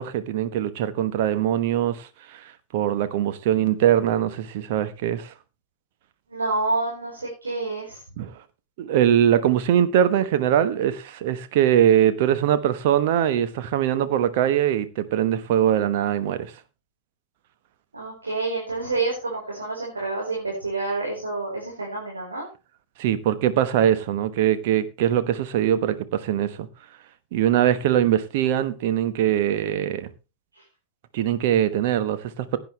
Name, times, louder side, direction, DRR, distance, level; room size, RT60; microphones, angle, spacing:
voice 1, 0.0-5.3 8.2-8.3 8.8-16.5 23.0-26.7 27.3-30.1 31.1-32.6, right 10 dB, 50° right, 1.2 m, -22 dB
voice 2, 6.3-8.0 17.9-22.4, right 3 dB, 75° right, 4.5 m, -28 dB
16.5 x 9.3 x 3.3 m
figure-of-eight pair, 90°, 0 cm